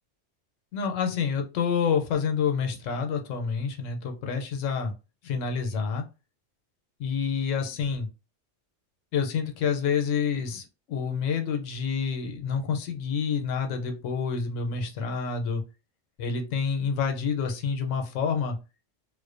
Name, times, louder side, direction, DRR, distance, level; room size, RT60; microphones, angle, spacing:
voice 1, 0.7-4.9 5.2-6.0 7.0-8.1 9.1-15.6 16.2-18.6, left 6 dB, 85° left, 4 dB, 0.9 m, -28 dB
2.4 x 2.1 x 2.4 m, 0.30 s
omnidirectional pair, 1.3 m